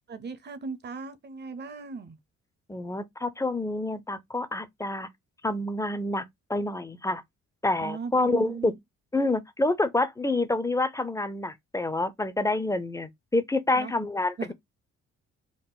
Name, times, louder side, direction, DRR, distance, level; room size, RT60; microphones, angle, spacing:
voice 1, 0.1-2.2 7.8-8.8 13.7-13.9 14.4-14.5, right 4 dB, 35° right, 0.7 m, -37 dB
voice 2, 2.7-5.1 5.4-7.2 7.6-8.7 9.1-14.5, left 2 dB, 10° left, 0.5 m, -28 dB
3.8 x 2.0 x 3.9 m
cardioid pair, 90°, 30 cm